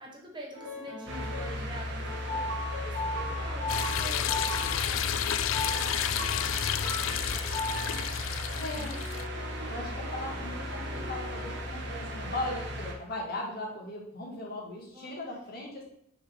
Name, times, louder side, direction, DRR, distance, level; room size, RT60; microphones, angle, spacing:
voice 1, 0.0-6.3 6.8-8.1 8.8-9.0 9.8-10.0 14.9-15.6, right 1 dB, 25° right, -1 dB, 1.3 m, -47 dB
sound 1, 0.5-1.5 2.0-4.7 5.5-8.2 8.9-11.6 12.2-12.6, left 1 dB, 80° right, 1.4 m, -38 dB
sound 2, 1.1-12.9, equal, 60° right, 1.2 m, -36 dB
sound 3, 3.7-9.2, left 10 dB, 80° left, 0.3 m, -31 dB
voice 2, 8.5-8.9 9.7-15.8, left 1 dB, 50° left, -2 dB, 1.8 m, -38 dB
6.2 x 3.7 x 5.1 m, 0.68 s
head